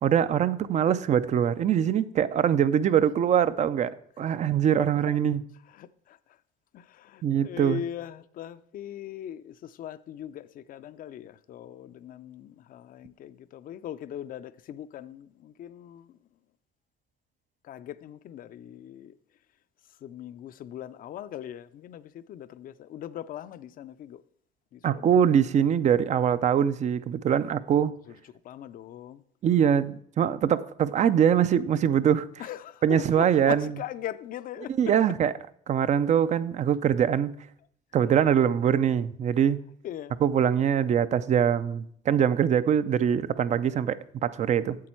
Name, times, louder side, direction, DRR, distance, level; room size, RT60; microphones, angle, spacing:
voice 1, 0.0-3.9 4.2-5.4 7.2-7.8 24.8-27.9 29.4-32.3 32.8-33.7 34.8-35.3 35.7-37.3 37.9-39.6 40.2-44.8, right 8 dB, 45° right, 0.5 m, -23 dB
voice 2, 4.8-5.2 5.7-6.2 6.7-16.2 17.6-19.2 20.0-24.2 24.7-25.2 28.1-28.2 28.4-29.2 32.4-34.7 39.8-40.1, left 10 dB, 55° left, 0.5 m, -40 dB
8.5 x 7.6 x 4.4 m
cardioid pair, 110°, 17 cm